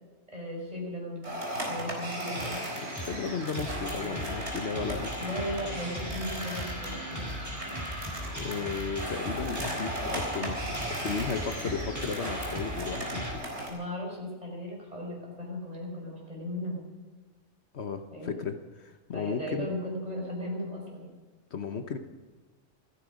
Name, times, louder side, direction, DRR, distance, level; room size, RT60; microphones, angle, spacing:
voice 1, 0.3-1.3 1.7-2.6 5.2-7.3 13.7-16.8 18.1-18.3 19.1-21.1, left 1 dB, 30° right, -2 dB, 5.9 m, -36 dB
sound 1, 1.2-13.7, right 1 dB, 60° right, 4.5 m, -37 dB
sound 2, 2.3-13.3, equal, 15° right, 4.4 m, -38 dB
voice 2, 2.8-5.1 8.3-13.3 17.7-19.7 21.5-22.0, left 5 dB, 65° left, 7 dB, 1.3 m, -34 dB
27.5 x 10.0 x 5.2 m, 1.4 s
omnidirectional pair, 1.2 m